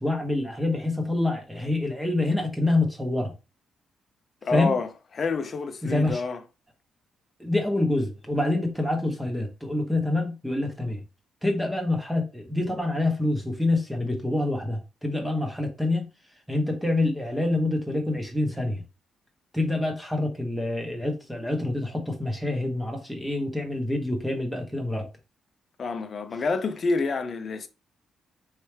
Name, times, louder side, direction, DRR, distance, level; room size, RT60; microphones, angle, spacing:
voice 1, 0.0-3.3 4.5-4.8 5.8-6.2 7.4-11.0 11.4-16.1 16.5-18.8 19.5-25.1, left 2 dB, 5° right, 0.8 m, -26 dB
voice 2, 4.4-4.9 5.1-6.4 25.8-27.7, left 4 dB, 35° left, 0.5 m, -27 dB
4.4 x 3.2 x 3.2 m
cardioid pair, 175°, 0 cm